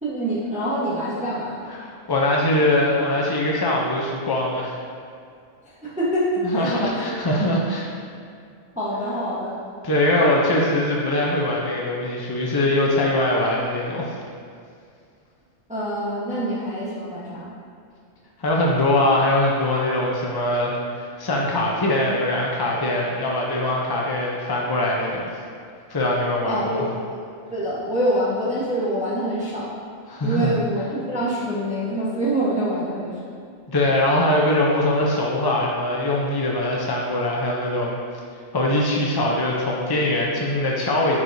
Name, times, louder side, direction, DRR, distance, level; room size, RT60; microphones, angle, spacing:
voice 1, 0.0-1.6 5.6-7.1 8.7-9.6 15.7-17.5 26.5-26.9 27.5-29.7 30.2-33.2, right 1 dB, 5° right, -9 dB, 1.0 m, -25 dB
voice 2, 1.7-4.7 6.5-7.9 9.8-14.1 18.4-25.3 25.9-26.9 30.1-30.5 33.7-38.0 38.5-41.2, left 1 dB, 35° left, -3 dB, 0.3 m, -22 dB
9.5 x 4.6 x 2.7 m, 2.3 s
omnidirectional pair, 1.3 m